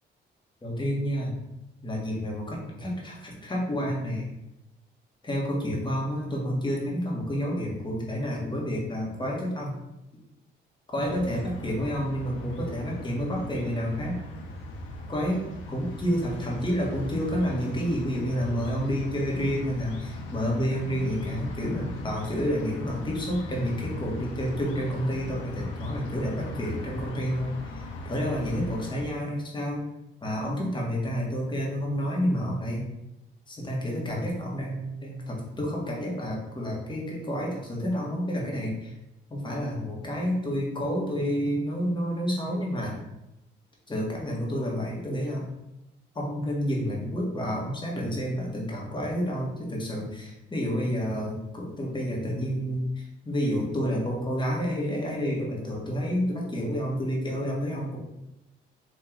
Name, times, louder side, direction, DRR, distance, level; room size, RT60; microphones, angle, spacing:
voice 1, 0.6-1.4 1.8-4.3 5.2-9.7 10.9-14.2 15.1-29.8 30.2-32.8 33.5-38.9 39.3-43.0 43.9-45.5 46.1-58.0, equal, 25° left, -3 dB, 1.5 m, -29 dB
sound 1, 11.0-29.0, left 2 dB, 80° left, 0.8 m, -39 dB
4.6 x 2.9 x 3.9 m, 0.91 s
cardioid pair, 90°, 20 cm